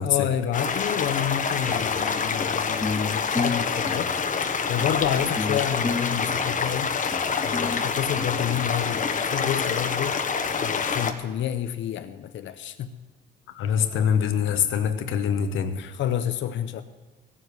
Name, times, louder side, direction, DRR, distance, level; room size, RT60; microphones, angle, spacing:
voice 1, 0.0-4.1 4.7-7.0 7.4-10.2 10.6-12.9 15.7-16.8, left 10 dB, 70° left, 0.7 m, -29 dB
sound 1, 0.5-11.1, left 5 dB, 40° left, 1.1 m, -27 dB
sound 2, 1.7-9.1, left 3 dB, 15° left, 0.5 m, -33 dB
voice 2, 13.5-15.8, left 8 dB, 85° left, 1.1 m, -24 dB
16.0 x 7.4 x 8.0 m
cardioid pair, 90°, 20 cm